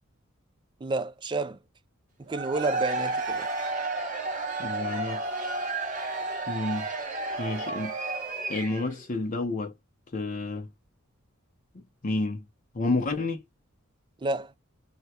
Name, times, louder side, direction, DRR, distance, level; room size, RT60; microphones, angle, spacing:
voice 1, 0.8-1.6 2.3-3.5 14.2-14.5, right 2 dB, 20° right, 0.3 m, -30 dB
Cheering / Crowd, 2.3-9.0, right 3 dB, 35° right, 1.2 m, -32 dB
voice 2, 4.6-5.2 6.5-6.9 7.4-7.9 8.5-9.7 10.1-10.7 12.0-12.4 12.7-13.4, left 2 dB, 40° left, 0.6 m, -30 dB
3.3 x 2.2 x 2.8 m
head